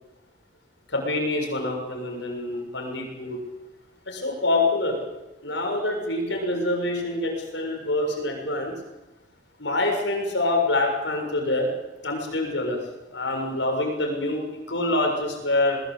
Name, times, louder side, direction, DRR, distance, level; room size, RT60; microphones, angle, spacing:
voice 1, 0.9-3.4 4.1-5.0 5.4-8.7 9.6-11.7 12.0-12.8 13.1-15.8, left 2 dB, 75° left, 2 dB, 7.1 m, -26 dB
21.5 x 21.5 x 8.6 m, 1.0 s
head